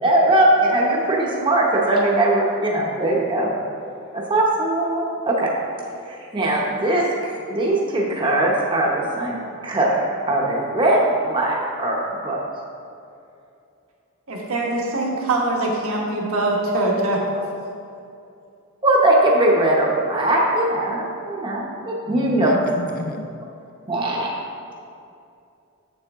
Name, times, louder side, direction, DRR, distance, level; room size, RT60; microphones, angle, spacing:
voice 1, 0.0-3.5 4.1-5.5 6.3-9.9 10.3-12.4 18.8-22.5 23.9-24.3, right 1 dB, 20° right, -3 dB, 0.8 m, -20 dB
voice 2, 14.3-17.4, right 2 dB, 70° right, -2 dB, 1.3 m, -23 dB
voice 3, 22.1-23.3, left 3 dB, 40° left, 5 dB, 0.3 m, -32 dB
7.6 x 6.7 x 3.6 m, 2.6 s
head